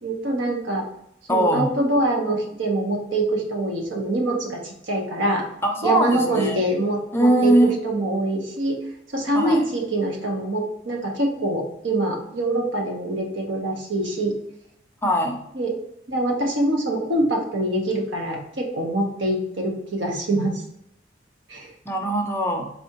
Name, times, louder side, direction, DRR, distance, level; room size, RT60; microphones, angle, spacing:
voice 1, 0.0-0.8 1.3-5.5 5.8-8.8 9.1-14.3 15.5-15.7 16.1-20.6 21.5-21.7, right 1 dB, 85° right, 1 dB, 1.1 m, -24 dB
voice 2, 1.3-1.7 5.6-6.6 7.1-7.7 9.4-9.6 15.0-15.4 21.9-22.7, right 1 dB, 15° left, 3 dB, 0.5 m, -21 dB
4.3 x 3.4 x 2.9 m, 0.76 s
head